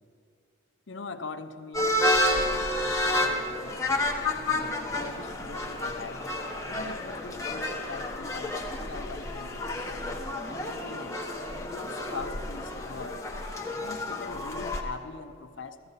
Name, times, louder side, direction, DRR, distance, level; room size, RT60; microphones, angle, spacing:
voice 1, 0.9-6.3 6.7-10.2 10.5-13.3 13.8-15.9, left 4 dB, 60° left, 9 dB, 0.7 m, -42 dB
sound 1, 1.7-14.8, left 1 dB, 15° left, 1.0 m, -30 dB
15.5 x 14.5 x 4.0 m, 2.3 s
head